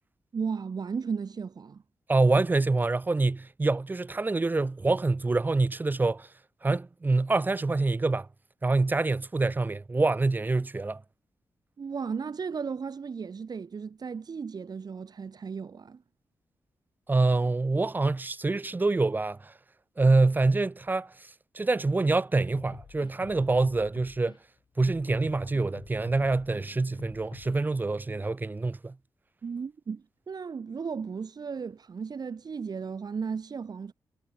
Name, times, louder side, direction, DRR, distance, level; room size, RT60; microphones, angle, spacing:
voice 1, 0.3-1.8 11.8-16.0 29.4-33.9, right 5 dB, 55° right, 4.7 m, -35 dB
voice 2, 2.1-6.3 6.6-8.3 8.6-11.0 17.1-19.5 20.0-21.1 21.5-24.3 24.8-28.9, right 3 dB, 20° right, 0.8 m, -26 dB
sound 1, 22.6-24.4 24.8-27.7, left 7 dB, 70° left, 6.6 m, -48 dB
wide cardioid pair, 125°, 8 cm